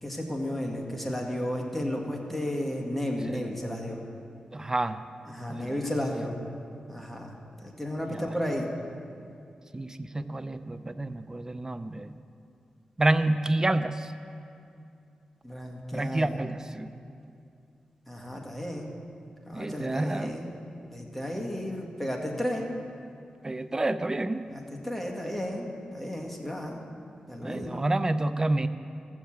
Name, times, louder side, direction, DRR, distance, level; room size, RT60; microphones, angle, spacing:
voice 1, 0.0-4.0 5.3-6.3 6.9-7.3 7.6-8.7 15.4-16.4 18.1-18.9 19.5-20.6 20.9-22.6 24.5-24.6 24.8-26.8 27.3-27.8, left 1 dB, 10° left, 0 dB, 1.9 m, -33 dB
voice 2, 4.5-5.0 5.5-5.9 8.1-8.6 9.7-12.1 13.0-14.1 15.9-16.9 19.5-20.3 23.4-24.5 27.4-28.7, right 2 dB, 25° right, 11 dB, 0.5 m, -29 dB
14.5 x 7.3 x 7.3 m, 2.5 s
cardioid pair, 70°, 2 cm